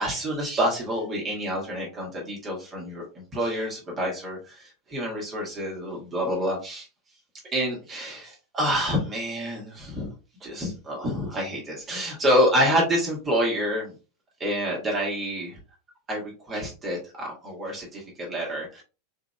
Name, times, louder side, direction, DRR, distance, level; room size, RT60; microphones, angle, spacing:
voice 1, 0.0-6.9 7.5-10.1 10.4-13.9 14.4-15.6 16.1-18.8, equal, 25° right, -2 dB, 1.7 m, -27 dB
4.4 x 3.8 x 2.2 m, 0.33 s
figure-of-eight pair, 90°, 0 cm